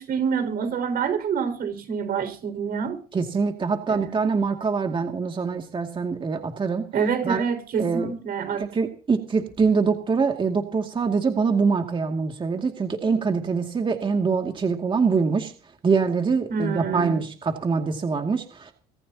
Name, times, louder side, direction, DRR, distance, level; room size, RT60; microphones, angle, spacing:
voice 1, 0.0-3.0 3.9-4.1 6.9-8.7 16.5-17.2, right 6 dB, 60° right, 8 dB, 5.5 m, -27 dB
voice 2, 3.1-6.9 7.2-7.4 7.8-8.1 8.6-15.5 15.8-18.7, right 5 dB, 30° right, 4 dB, 2.3 m, -24 dB
24.0 x 14.5 x 2.9 m, 0.38 s
cardioid pair, 110°, 17 cm